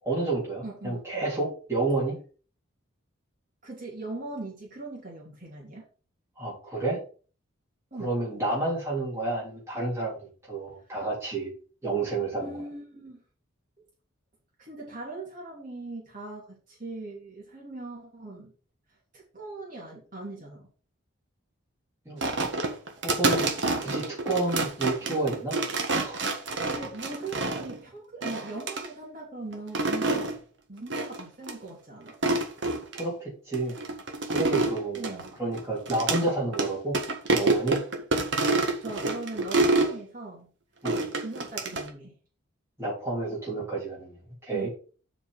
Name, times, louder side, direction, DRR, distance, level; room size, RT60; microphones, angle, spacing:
voice 1, 0.0-2.2 6.4-7.0 8.0-11.5 11.8-12.5 22.1-22.2 23.0-23.5 23.8-25.6 26.0-26.3 33.0-33.8 34.3-37.0 37.3-37.8 40.8-41.0 42.8-44.7, right 2 dB, 15° right, -6 dB, 3.5 m, -30 dB
voice 2, 0.6-1.0 3.6-5.9 7.9-8.1 12.4-13.2 14.6-18.5 19.1-20.7 26.6-30.3 30.7-32.2 34.9-35.3 38.8-40.5 41.2-42.1 44.5-44.7, right 2 dB, 40° right, -4 dB, 3.0 m, -40 dB
sound 1, 22.2-27.8 28.2-28.9 29.5-30.3 30.9-31.2 31.5-31.6 32.1-33.0 33.5-36.2 36.5-36.7 36.9-39.9 40.8-41.9, right 2 dB, 55° right, 1.5 m, -27 dB
7.3 x 5.3 x 5.1 m, 0.38 s
head